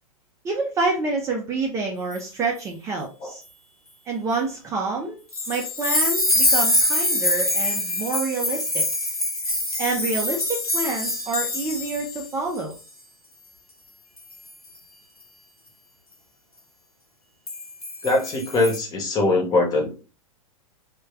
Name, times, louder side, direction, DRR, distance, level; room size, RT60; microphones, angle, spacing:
voice 1, 0.4-3.4 4.1-5.2 5.5-8.8 9.8-12.8, right 3 dB, 15° right, 0 dB, 0.5 m, -27 dB
sound 1, 5.3-12.3 12.6-12.8 14.2-14.5 17.5-18.8, left 1 dB, 90° left, 0.8 m, -24 dB
voice 2, 18.0-19.9, left 2 dB, 20° left, 2 dB, 1.0 m, -22 dB
3.2 x 2.3 x 3.2 m, 0.34 s
figure-of-eight pair, 100°, 18 cm